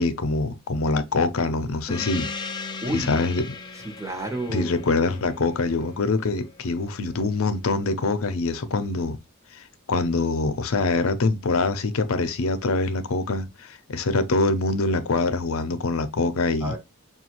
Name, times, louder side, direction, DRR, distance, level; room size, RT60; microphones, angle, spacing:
voice 1, 0.0-2.3 2.9-3.5 4.5-9.2 9.5-9.6 9.9-16.7, left 3 dB, 75° left, 0.6 m, -24 dB
Gong, 1.9-6.9, left 4 dB, 20° left, 0.4 m, -37 dB
voice 2, 2.8-3.2 3.7-4.8 16.6-16.8, right 1 dB, 15° right, 0.8 m, -31 dB
6.0 x 2.3 x 2.9 m
head